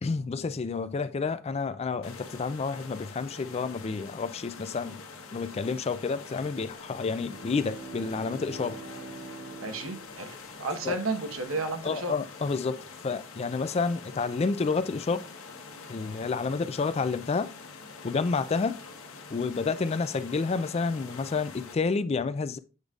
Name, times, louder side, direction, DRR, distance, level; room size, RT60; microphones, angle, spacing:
voice 1, 0.0-5.0 5.3-8.8 10.8-11.0 11.8-15.2 15.9-17.5 18.0-18.8 19.3-22.6, left 4 dB, 30° left, 0.3 m, -29 dB
sound 1, 2.0-21.7, left 4 dB, 85° left, 1.1 m, -45 dB
Bowed string instrument, 6.8-11.4, right 3 dB, 40° right, 0.7 m, -45 dB
voice 2, 9.6-12.1, right 2 dB, 80° right, 1.1 m, -32 dB
8.0 x 5.1 x 2.4 m
head